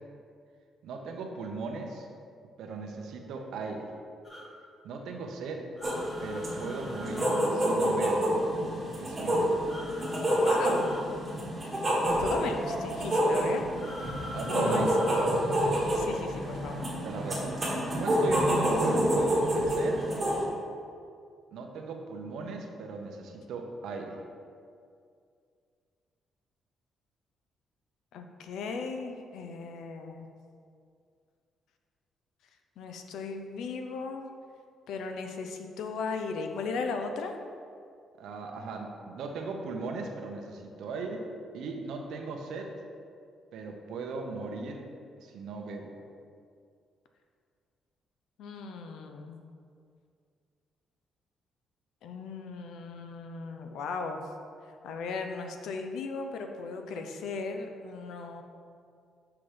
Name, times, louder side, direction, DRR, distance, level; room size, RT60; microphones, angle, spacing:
voice 1, 0.8-2.1 2.6-3.9 4.8-5.7 6.2-8.3 9.0-9.6 14.3-15.4 17.0-17.5 17.9-20.0 21.5-24.2 38.2-41.3 41.5-42.7 43.5-44.8 45.2-46.0, right 3 dB, 75° right, 3 dB, 0.9 m, -38 dB
sound 1, 4.2-4.5 5.8-7.4 9.6-11.0 13.8-15.3, left 1 dB, 25° left, 1.5 m, -40 dB
sound 2, 5.8-20.4, equal, 15° right, 1.7 m, -28 dB
voice 2, 10.4-11.0 12.2-13.7 14.0-14.2 14.5-14.9 15.9-16.8 28.1-30.3 32.8-34.2 34.9-37.3 48.4-49.4 52.0-54.2 54.8-58.4, left 4 dB, 75° left, 5 dB, 0.7 m, -37 dB
5.9 x 5.9 x 5.1 m, 2.3 s
cardioid pair, 160°, 0 cm